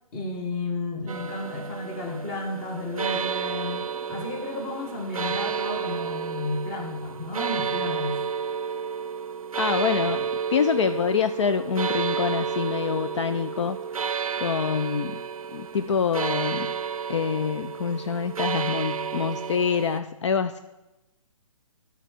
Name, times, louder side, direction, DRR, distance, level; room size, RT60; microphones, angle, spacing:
voice 1, 0.1-8.2, left 2 dB, 20° left, 3 dB, 1.0 m, -32 dB
sound 1, 1.1-20.0, right 7 dB, 75° right, 0.5 m, -31 dB
voice 2, 9.6-13.8 14.4-15.2 15.5-16.7 17.1-20.6, left 6 dB, 55° left, 9 dB, 0.4 m, -26 dB
10.5 x 4.6 x 6.1 m, 0.98 s
figure-of-eight pair, 145°, 18 cm